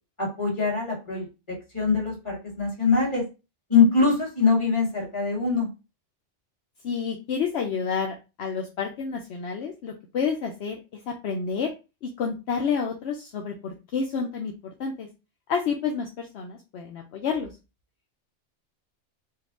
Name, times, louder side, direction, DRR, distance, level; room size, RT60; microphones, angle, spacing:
voice 1, 0.2-1.2 1.7-3.2 3.7-5.7, left 4 dB, 25° left, -3 dB, 1.9 m, -23 dB
voice 2, 6.8-11.7 12.0-14.5 14.8-15.1 15.5-17.5, left 6 dB, 70° left, 2 dB, 0.9 m, -29 dB
4.4 x 2.3 x 3.6 m, 0.28 s
omnidirectional pair, 1.2 m